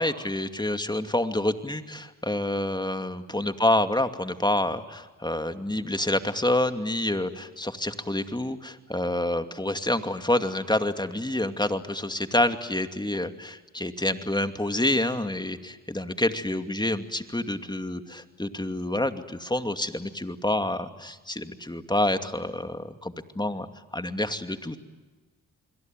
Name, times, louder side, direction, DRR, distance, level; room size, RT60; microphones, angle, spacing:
voice 1, 0.0-23.7 23.9-24.8, left 1 dB, 10° left, 8 dB, 2.5 m, -28 dB
27.5 x 22.0 x 9.2 m, 1.2 s
supercardioid pair, 55°, 37 cm